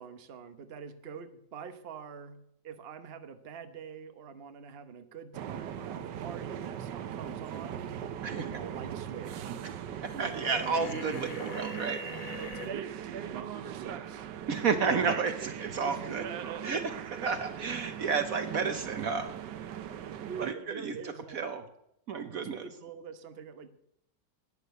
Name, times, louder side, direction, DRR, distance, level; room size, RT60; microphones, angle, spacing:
voice 1, 0.0-7.8 8.3-9.6 10.1-11.7 12.3-14.3 14.7-15.1 15.8-17.0 20.2-21.4 22.3-23.7, right 6 dB, 40° right, 9 dB, 1.1 m, -44 dB
sound 1, 5.3-20.5, right 9 dB, 85° right, 1.5 m, -40 dB
voice 2, 10.0-12.4 14.5-16.2 16.6-16.9 17.2-19.3 20.4-21.6 22.1-22.7, right 5 dB, 60° right, 9 dB, 1.3 m, -32 dB
sound 2, 10.4-12.7, left 6 dB, 40° left, 0.8 m, -43 dB
12.0 x 9.8 x 8.2 m, 0.77 s
omnidirectional pair, 1.8 m